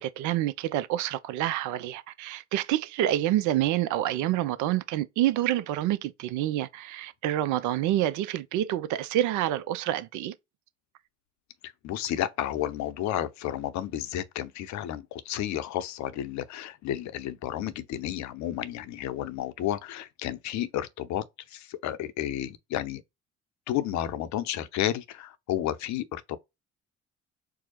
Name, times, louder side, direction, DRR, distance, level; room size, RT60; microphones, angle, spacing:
voice 1, 0.0-10.3, right 13 dB, 60° right, 0.6 m, -27 dB
voice 2, 11.6-21.2 21.5-23.0 23.7-26.4, left 12 dB, 55° left, 0.7 m, -32 dB
4.6 x 2.0 x 2.8 m
hypercardioid pair, 55°, 35 cm